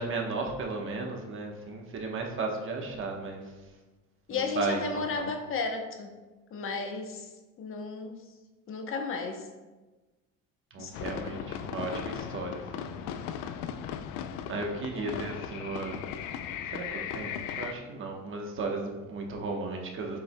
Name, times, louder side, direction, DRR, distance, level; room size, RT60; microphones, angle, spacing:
voice 1, 0.0-3.4 4.6-5.3 10.7-13.1 14.5-16.0 16.7-20.2, right 3 dB, 40° right, 1 dB, 1.1 m, -35 dB
voice 2, 4.3-6.1 6.5-7.3 7.6-8.2 8.7-9.5 10.8-11.3 15.0-15.1, left 4 dB, 45° left, 4 dB, 0.8 m, -34 dB
sound 1, 10.9-17.7, left 9 dB, 85° left, 0.5 m, -37 dB
7.7 x 6.7 x 2.2 m, 1.2 s
cardioid pair, 135°, 31 cm